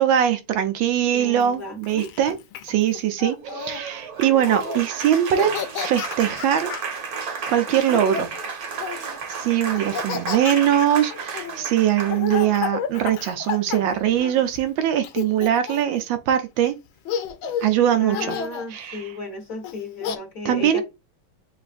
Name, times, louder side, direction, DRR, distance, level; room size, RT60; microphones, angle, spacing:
voice 1, 0.0-2.4 2.6-5.5 5.8-6.7 7.5-8.3 9.0-16.7 17.6-18.4 18.7-19.1 20.4-20.8, right 10 dB, 75° right, 1.3 m, -21 dB
voice 2, 1.1-2.1 18.0-20.8, left 2 dB, 50° left, 1.8 m, -34 dB
Laughter, 1.4-3.8 4.4-4.8 5.1-6.9 7.7-9.2 9.7-14.6 15.0-16.0 16.6-16.7 17.1-17.7 18.1-18.7 19.6-20.2, left 8 dB, 85° left, 1.5 m, -32 dB
Applause, 3.4-12.6, right 5 dB, 55° right, 1.2 m, -33 dB
7.0 x 2.5 x 2.5 m
omnidirectional pair, 2.2 m